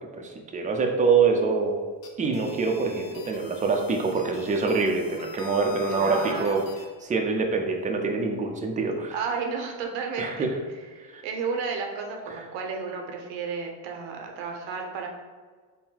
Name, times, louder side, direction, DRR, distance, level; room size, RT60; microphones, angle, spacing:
voice 1, 0.1-1.8 2.2-6.6 7.0-9.1 10.2-10.5 11.1-11.2, right 4 dB, 15° right, 2 dB, 0.5 m, -25 dB
sound 1, 1.9-6.9, left 7 dB, 50° left, 0.8 m, -43 dB
voice 2, 5.9-6.7 9.1-10.5 10.9-15.1, right 5 dB, 85° right, 2 dB, 0.8 m, -32 dB
3.7 x 2.2 x 4.4 m, 1.5 s
supercardioid pair, 90°, 47 cm